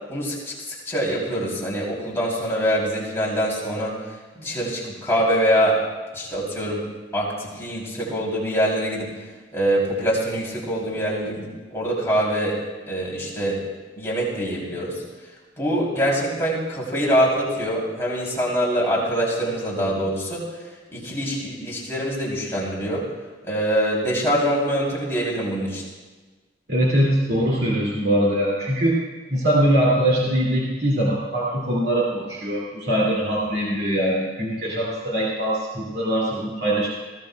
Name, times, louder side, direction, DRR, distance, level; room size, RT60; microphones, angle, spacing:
voice 1, 0.1-0.5 0.9-3.9 4.4-5.8 6.1-6.8 7.1-9.1 9.5-12.6 12.9-13.6 14.0-15.0 15.6-20.4 20.9-23.0 23.4-25.8, equal, 15° left, -5 dB, 3.0 m, -24 dB
voice 2, 26.7-29.0 29.3-36.9, right 1 dB, 60° right, -5 dB, 2.3 m, -22 dB
19.5 x 15.5 x 2.2 m, 1.3 s
head